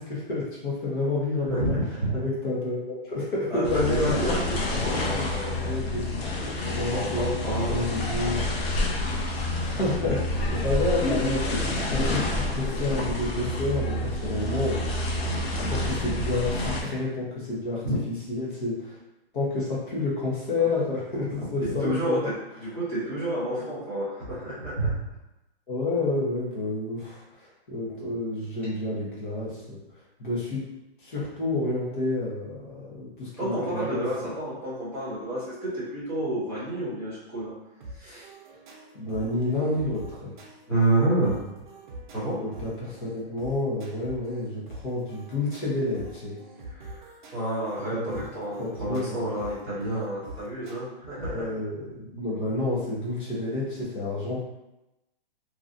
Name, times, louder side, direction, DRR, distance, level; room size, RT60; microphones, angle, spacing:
voice 1, 0.0-1.8 2.1-4.5 5.2-5.3 5.6-6.1 6.6-7.3 7.7-8.4 9.5-15.0 15.3-17.8 18.3-19.0 19.3-22.3 25.7-29.8 30.2-30.6 31.0-34.3 38.9-40.3 42.3-46.4 47.9-48.2 48.6-49.3 51.3-54.4, left 2 dB, 55° left, -5 dB, 1.1 m, -29 dB
voice 2, 1.4-2.2 3.5-5.7 6.8-8.2 17.8-17.9 20.6-20.7 21.6-25.0 33.4-37.6 37.9-38.3 40.7-41.4 42.1-42.4 46.7-51.5, right 1 dB, 5° left, -12 dB, 0.7 m, -29 dB
sound 1, 3.6-16.8, left 2 dB, 75° left, 0.7 m, -28 dB
sound 2, 10.2-16.3, right 2 dB, 25° left, 1.1 m, -38 dB
sound 3, 37.8-50.8, right 1 dB, 50° right, 0.7 m, -45 dB
2.9 x 2.5 x 2.6 m, 0.94 s
hypercardioid pair, 170°, 30 cm